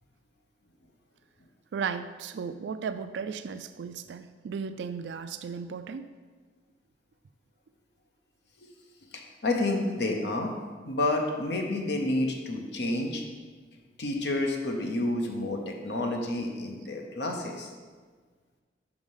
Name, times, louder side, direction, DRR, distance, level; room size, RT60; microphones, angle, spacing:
voice 1, 1.7-6.1, right 6 dB, 80° right, 10 dB, 0.3 m, -35 dB
voice 2, 9.1-10.5 10.9-13.2 14.0-17.7, left 2 dB, 70° left, 2 dB, 0.8 m, -29 dB
5.3 x 4.9 x 5.5 m, 1.5 s
head